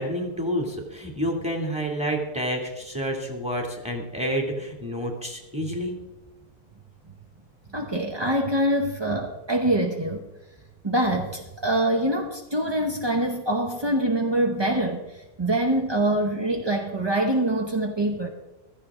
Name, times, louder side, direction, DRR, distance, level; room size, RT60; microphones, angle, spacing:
voice 1, 0.0-6.0, equal, 5° right, 1 dB, 2.2 m, -29 dB
voice 2, 7.7-10.3 10.8-18.3, right 1 dB, 25° right, 2 dB, 0.5 m, -24 dB
15.5 x 13.5 x 3.7 m, 1.0 s
omnidirectional pair, 1.7 m